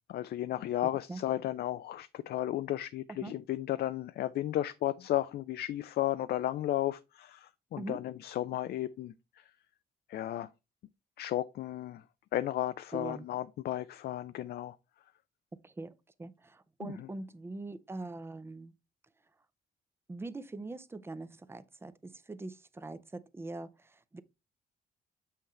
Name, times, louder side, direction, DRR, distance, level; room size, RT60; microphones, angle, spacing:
voice 1, 0.1-9.1 10.1-10.5 11.2-12.0 12.3-14.8 16.8-16.9, left 13 dB, 70° left, 0.4 m, -34 dB
voice 2, 12.9-13.3 15.6-18.7 20.1-24.2, right 2 dB, 15° right, 0.5 m, -43 dB
7.0 x 5.7 x 3.2 m
cardioid pair, 125°, 17 cm